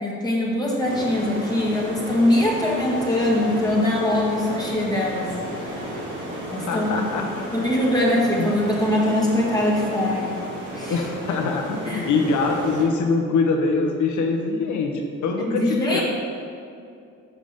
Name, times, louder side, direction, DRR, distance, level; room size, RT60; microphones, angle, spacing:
voice 1, 0.0-5.3 6.5-6.9 7.5-10.3 10.7-11.0 11.9-12.1 15.4-16.0, left 1 dB, 15° left, -5 dB, 1.5 m, -22 dB
sound 1, 0.8-12.8, right 1 dB, 85° right, 2.0 m, -33 dB
voice 2, 6.7-7.5 8.4-8.5 10.9-16.0, left 4 dB, 75° left, 3 dB, 1.1 m, -23 dB
7.1 x 5.3 x 5.6 m, 2.4 s
cardioid pair, 90°, 30 cm